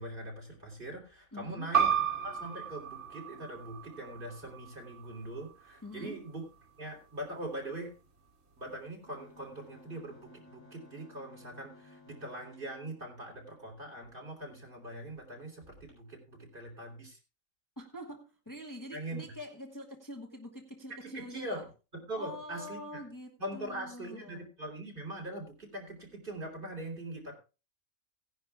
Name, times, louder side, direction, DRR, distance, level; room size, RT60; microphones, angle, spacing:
voice 1, 0.0-1.9 2.2-6.4 6.8-7.9 8.6-17.2 18.9-19.3 20.9-23.0 23.4-27.4, right 1 dB, 40° right, 0 dB, 3.7 m, -42 dB
voice 2, 1.3-1.7 5.8-6.2 17.8-21.6 22.2-24.5, left 1 dB, 15° left, 2 dB, 1.3 m, -45 dB
sound 1, 1.7-6.9, right 8 dB, 60° right, 2.4 m, -34 dB
sound 2, 9.0-14.1 14.6-14.7 15.0-15.2 15.6-15.9, left 2 dB, 35° left, 5.3 m, -57 dB
17.5 x 10.5 x 2.4 m, 0.31 s
omnidirectional pair, 1.4 m